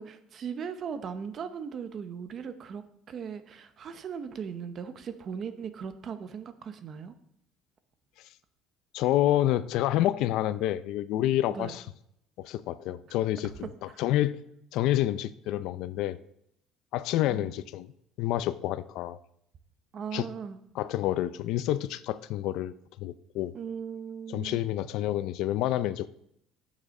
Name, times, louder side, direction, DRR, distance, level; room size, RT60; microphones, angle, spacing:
voice 1, 0.0-7.1 11.5-11.8 13.9-14.0 17.3-17.5 19.9-20.6 23.5-24.7, right 7 dB, 35° right, 0.8 m, -38 dB
voice 2, 8.9-11.8 12.4-14.4 14.7-16.2 16.9-17.9 18.2-19.2 20.1-20.3 20.8-22.7 23.0-23.5 24.3-26.1, left 13 dB, 65° left, 0.5 m, -28 dB
8.8 x 7.3 x 5.3 m
cardioid pair, 155°, 0 cm